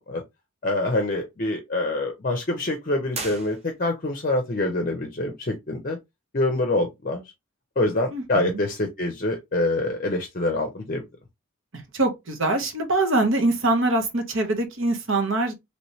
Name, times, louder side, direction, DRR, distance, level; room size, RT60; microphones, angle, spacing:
voice 1, 0.6-6.0 6.3-7.2 7.8-11.0, left 2 dB, 40° left, 0.6 m, -25 dB
sound 1, 3.1-4.2, right 4 dB, 30° right, 0.6 m, -37 dB
voice 2, 8.1-8.6 11.7-15.5, right 2 dB, 75° right, 1.0 m, -24 dB
3.0 x 2.9 x 3.0 m
head